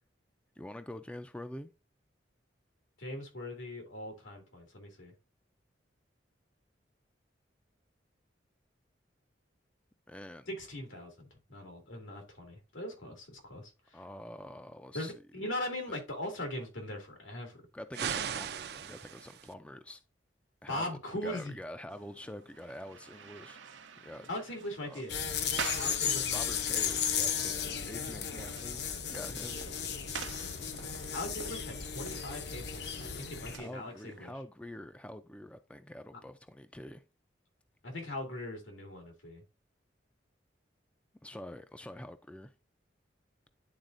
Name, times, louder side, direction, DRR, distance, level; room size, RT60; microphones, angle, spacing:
voice 1, 0.6-1.7 10.1-10.5 13.9-15.1 15.9-16.0 17.7-20.0 20.6-20.9 21.2-23.6 24.0-24.3 24.8-25.0 26.3-29.7 33.4-37.0 41.2-42.5, left 1 dB, 5° left, 0.3 m, -46 dB
voice 2, 3.0-5.1 10.5-14.0 14.9-17.6 20.7-21.6 24.2-25.1 25.8-26.4 31.1-34.3 37.8-39.4, left 1 dB, 90° left, 2.3 m, -40 dB
sound 1, 17.9-19.5, right 8 dB, 55° right, 0.4 m, -37 dB
sound 2, 21.9-34.3, right 6 dB, 85° right, 0.8 m, -47 dB
sound 3, 25.1-33.6, left 7 dB, 60° left, 0.7 m, -35 dB
10.5 x 4.0 x 2.5 m
head